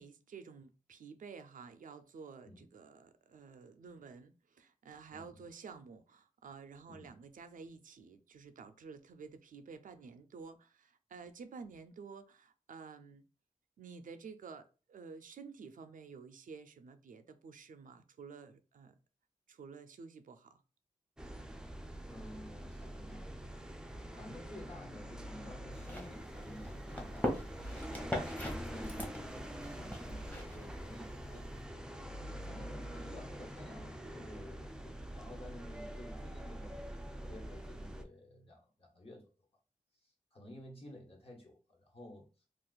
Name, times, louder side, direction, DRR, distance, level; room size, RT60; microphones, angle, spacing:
voice 1, 0.0-13.3 13.8-19.0 19.5-20.6 32.4-32.6, right 5 dB, 85° right, 0.4 m, -51 dB
sound 1, 21.2-38.0, right 1 dB, 5° right, 0.4 m, -45 dB
voice 2, 22.0-23.5 24.1-28.0 28.4-31.6 32.2-39.3 40.0-42.3, left 1 dB, 45° left, 1.2 m, -52 dB
sound 2, 25.7-31.6, left 1 dB, 10° left, 0.9 m, -42 dB
2.5 x 2.3 x 3.8 m
wide cardioid pair, 85°, 13 cm